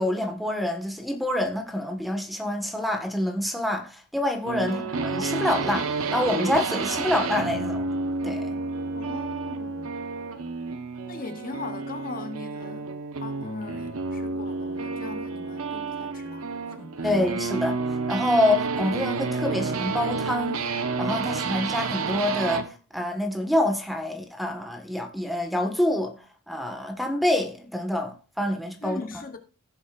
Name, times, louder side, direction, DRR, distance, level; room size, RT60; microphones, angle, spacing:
voice 1, 0.0-7.8 8.2-8.6 17.0-17.8 18.1-20.6 21.0-26.1 26.5-29.0, left 1 dB, ahead, 1.5 m, -26 dB
sound 1, 4.5-22.7, right 4 dB, 75° right, 1.1 m, -30 dB
voice 2, 8.9-9.9 11.1-12.9 13.2-17.1 28.8-29.4, left 3 dB, 40° left, 0.9 m, -40 dB
16.0 x 7.2 x 2.5 m
head